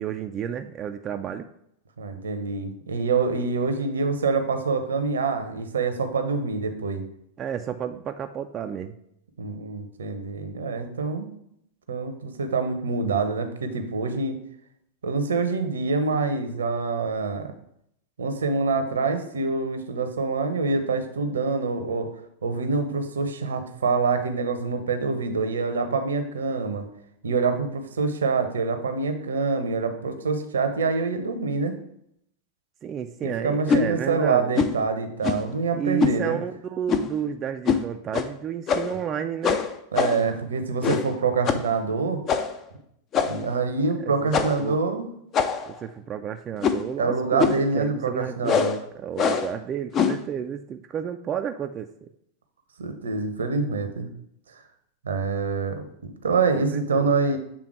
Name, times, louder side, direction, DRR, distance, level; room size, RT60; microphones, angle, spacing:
voice 1, 0.0-1.5 7.4-9.0 32.8-34.6 35.7-39.6 44.0-44.8 45.7-48.5 48.9-52.1 56.5-57.1, right 8 dB, 30° right, 6 dB, 0.4 m, -31 dB
voice 2, 2.0-7.0 9.4-11.3 11.9-14.4 15.0-17.5 18.2-22.1 22.4-26.8 27.2-31.8 33.2-36.4 39.9-42.2 43.1-45.1 47.0-48.8 52.8-54.1 55.0-57.4, right 4 dB, 70° right, 8 dB, 0.8 m, -26 dB
sound 1, 33.7-33.9 34.5-34.8 35.2-35.5 36.0-36.2 36.9-37.2 37.6-37.8 38.1-38.3 38.7-39.0 39.4-40.3 40.8-41.1 41.5-41.7 42.3-42.6 43.1-43.5 44.3-44.7 45.3-45.8 46.6-46.9 47.4-47.7 48.4-48.8 49.2-49.5 49.9-50.2, left 6 dB, 30° left, 0.5 m, -24 dB
7.7 x 3.6 x 4.7 m, 0.73 s
figure-of-eight pair, 90°, 0 cm